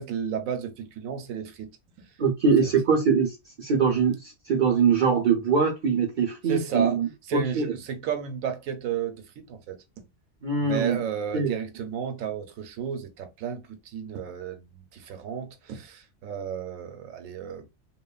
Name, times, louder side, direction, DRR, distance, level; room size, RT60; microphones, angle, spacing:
voice 1, 0.0-1.7 2.6-2.7 6.5-10.1 10.6-17.7, right 7 dB, 85° right, 1.0 m, -33 dB
voice 2, 2.2-7.7 10.4-11.0 11.3-11.5, right 5 dB, 60° right, 0.5 m, -23 dB
3.0 x 2.1 x 2.3 m
omnidirectional pair, 1.4 m